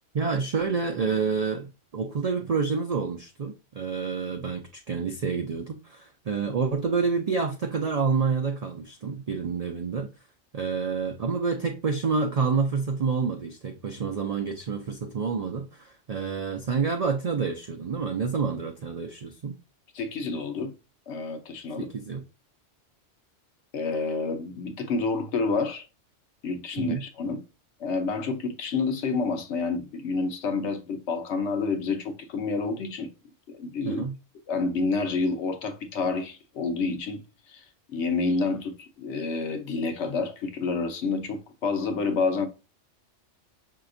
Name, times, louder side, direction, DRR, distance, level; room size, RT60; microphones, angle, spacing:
voice 1, 0.1-10.1 10.5-19.6 21.8-22.2 26.8-27.0 33.8-34.2, right 5 dB, 75° right, 0.3 m, -28 dB
voice 2, 19.9-20.7 21.1-21.9 23.7-25.9 26.4-27.4 27.8-33.1 33.5-34.0 34.5-37.2 37.5-42.5, left 4 dB, 70° left, 1.0 m, -29 dB
5.6 x 2.8 x 2.5 m
omnidirectional pair, 1.3 m